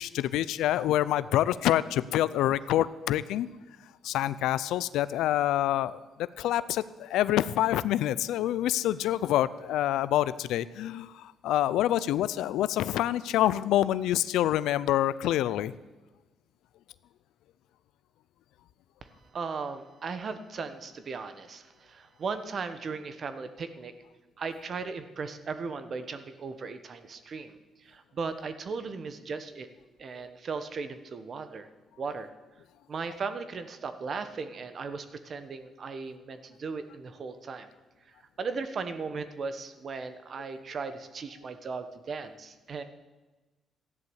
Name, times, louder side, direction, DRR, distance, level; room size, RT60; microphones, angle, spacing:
voice 1, 0.0-3.5 4.0-6.0 6.4-15.7, left 13 dB, 90° left, 16 dB, 0.4 m, -26 dB
voice 2, 19.0-23.9 24.4-29.7 30.0-31.7 32.0-32.3 32.9-37.7 38.4-42.8, right 4 dB, 50° right, 10 dB, 1.3 m, -37 dB
13.5 x 11.0 x 8.0 m, 1.2 s
cardioid pair, 90°, 0 cm